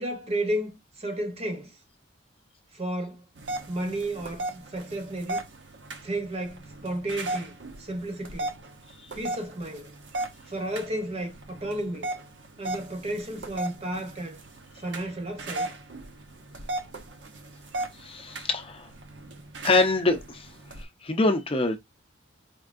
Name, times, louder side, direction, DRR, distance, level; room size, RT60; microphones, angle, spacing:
voice 1, 0.0-1.7 2.7-3.2 3.7-5.4 6.0-8.5 9.2-9.9 10.5-12.1 12.6-14.4 14.7-15.7, right 1 dB, 35° right, 0.8 m, -32 dB
sound 1, 3.4-20.8, right 2 dB, 65° right, 0.8 m, -37 dB
voice 2, 18.0-18.9 19.6-20.5 20.8-21.8, left 2 dB, 30° left, 0.6 m, -25 dB
4.4 x 2.5 x 2.5 m
head